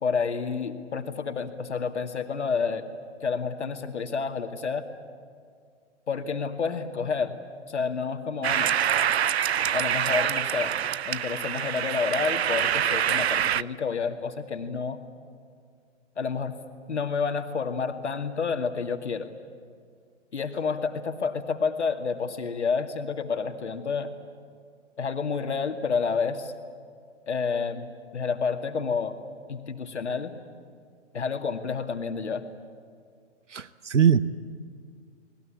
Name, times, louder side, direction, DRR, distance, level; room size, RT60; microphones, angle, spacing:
voice 1, 0.0-2.8 3.2-4.9 6.1-7.4 7.7-8.8 9.7-10.7 11.0-15.0 16.2-16.6 16.9-19.3 20.3-24.1 25.0-26.5 27.3-29.2 29.5-30.3 31.1-32.4, left 5 dB, 70° left, 6 dB, 2.3 m, -29 dB
sound 1, 8.4-13.6, right 9 dB, 60° right, 0.6 m, -25 dB
voice 2, 33.5-34.2, right 8 dB, 80° right, 16 dB, 0.9 m, -21 dB
30.0 x 20.5 x 8.7 m, 2.1 s
figure-of-eight pair, 125°, 36 cm